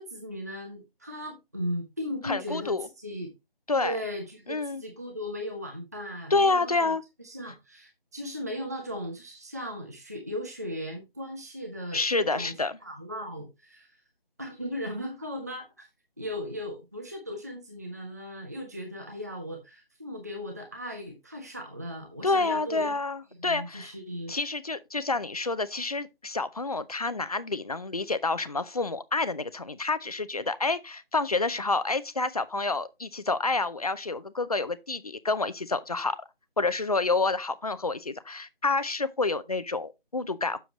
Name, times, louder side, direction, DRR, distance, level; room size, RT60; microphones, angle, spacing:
voice 1, 0.0-3.3 3.8-6.9 7.2-12.5 12.8-13.9 14.4-15.9 16.2-22.9 23.3-24.4, equal, 15° right, 0.6 m, -37 dB
voice 2, 2.2-2.9 3.7-3.9 4.5-4.8 6.3-7.0 11.9-12.8 22.2-23.9 24.3-36.2 36.6-40.6, left 3 dB, 40° left, 0.5 m, -28 dB
7.6 x 6.9 x 3.0 m
figure-of-eight pair, 160°, 30 cm